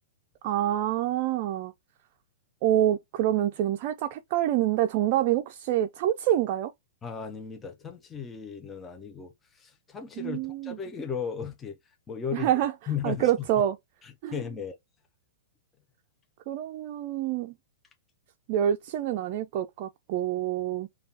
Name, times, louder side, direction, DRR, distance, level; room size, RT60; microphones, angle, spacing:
voice 1, 0.4-1.7 2.6-6.7 10.2-10.8 12.3-12.7 13.0-13.8 14.2-14.4 16.5-17.5 18.5-20.9, right 12 dB, 45° right, 0.4 m, -26 dB
voice 2, 7.0-11.8 12.1-12.5 12.9-13.3 14.0-14.8, left 7 dB, 15° left, 0.6 m, -36 dB
5.3 x 2.3 x 2.7 m
hypercardioid pair, 140°, 0 cm